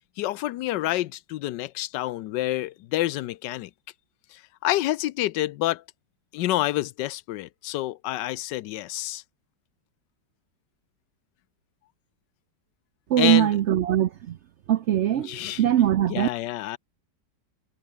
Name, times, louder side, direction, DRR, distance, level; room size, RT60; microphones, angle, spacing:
voice 1, 0.2-3.7 4.3-5.8 6.3-9.2 13.2-13.5 15.1-15.6 16.1-16.8, left 15 dB, 85° left, 1.3 m, -28 dB
voice 2, 13.1-14.4 14.7-16.3, right 11 dB, 70° right, 0.6 m, -22 dB
omnidirectional pair, 1.8 m